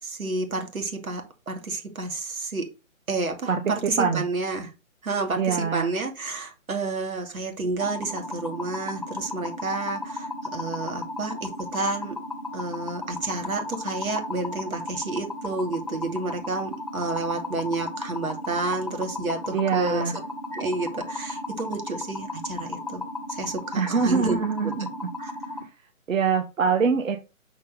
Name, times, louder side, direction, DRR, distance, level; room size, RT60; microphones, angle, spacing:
voice 1, 0.0-2.7 3.1-4.7 5.0-12.2 12.5-20.0 20.5-23.0 23.3-24.4 24.6-24.9 25.2-25.3, right 3 dB, 90° right, 2.6 m, -30 dB
voice 2, 3.5-4.2 5.4-5.9 19.5-20.1 23.7-25.1 26.1-27.2, right 6 dB, 70° right, 1.1 m, -24 dB
sound 1, 7.8-25.6, left 2 dB, 30° left, 0.4 m, -35 dB
6.2 x 4.3 x 5.4 m
hypercardioid pair, 165°, 41 cm